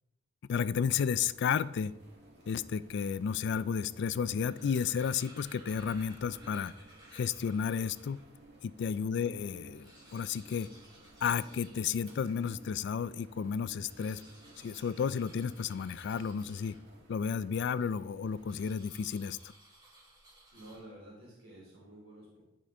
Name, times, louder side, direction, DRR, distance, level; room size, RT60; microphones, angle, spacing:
voice 1, 0.5-1.9 2.5-6.7 7.1-8.2 8.6-10.7 11.2-14.2 14.6-16.8 17.1-19.4, left 7 dB, 55° left, 17 dB, 0.3 m, -32 dB
sound 1, 1.2-18.5, right 1 dB, 55° right, 2.1 m, -57 dB
sound 2, 4.3-8.3 8.9-9.0 9.2-9.3 9.6-12.7 13.7-17.1 18.4-21.1, right 1 dB, 20° right, 2.0 m, -58 dB
voice 2, 9.0-9.4 20.5-22.4, right 1 dB, 85° right, -5 dB, 3.1 m, -52 dB
11.0 x 5.0 x 3.7 m, 0.89 s
head